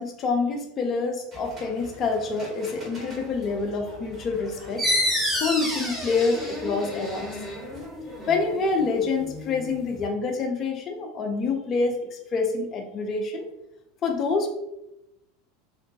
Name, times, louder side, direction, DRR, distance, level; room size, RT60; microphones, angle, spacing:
voice 1, 0.0-4.8 5.3-7.4 8.3-13.5 14.0-14.5, left 4 dB, 35° left, 4 dB, 0.3 m, -27 dB
sound 1, 1.3-7.9, right 1 dB, 30° right, 0.8 m, -45 dB
sound 2, 4.8-10.1, left 1 dB, ahead, 0.7 m, -30 dB
2.5 x 2.1 x 2.6 m, 0.88 s
figure-of-eight pair, 75°, 0 cm